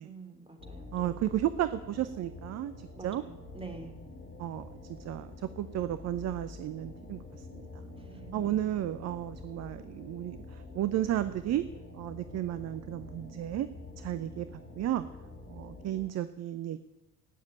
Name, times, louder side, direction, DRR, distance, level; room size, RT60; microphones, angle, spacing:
voice 1, 0.0-1.1 2.9-4.0 8.0-8.6, right 3 dB, 10° right, 5 dB, 3.2 m, -46 dB
sound 1, 0.6-16.1, left 2 dB, 75° left, 5.1 m, -47 dB
voice 2, 0.9-3.2 4.4-4.7 5.0-7.7 8.3-11.7 11.9-13.7 14.0-14.5 14.8-15.1 15.5-16.8, right 12 dB, 35° right, 13 dB, 0.8 m, -33 dB
18.5 x 7.4 x 9.0 m, 1.0 s
figure-of-eight pair, 65°, 47 cm